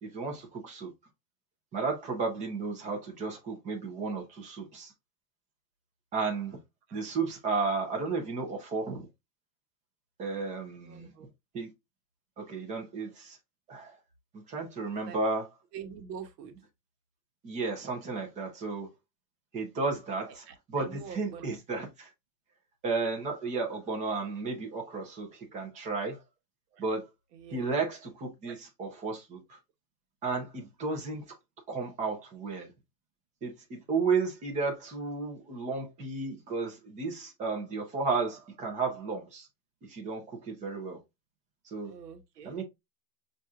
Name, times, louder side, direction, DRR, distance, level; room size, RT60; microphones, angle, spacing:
voice 1, 0.0-0.9 1.7-4.9 6.1-6.6 6.9-9.1 10.2-11.1 11.5-11.7 12.4-13.4 13.7-14.0 14.3-15.5 17.4-18.9 19.5-22.1 22.8-26.2 26.8-27.1 27.5-29.6 30.2-31.2 31.7-32.7 33.4-39.5 39.9-41.0 41.6-41.9 42.4-42.6, right 4 dB, 15° right, 0.6 m, -33 dB
voice 2, 10.8-11.3 15.1-15.2 15.7-16.6 20.3-21.6 26.7-26.8 27.3-27.7 28.4-28.5 30.9-31.0 41.8-42.5, right 7 dB, 75° right, 1.1 m, -45 dB
5.7 x 2.6 x 2.3 m
supercardioid pair, 170°, 49 cm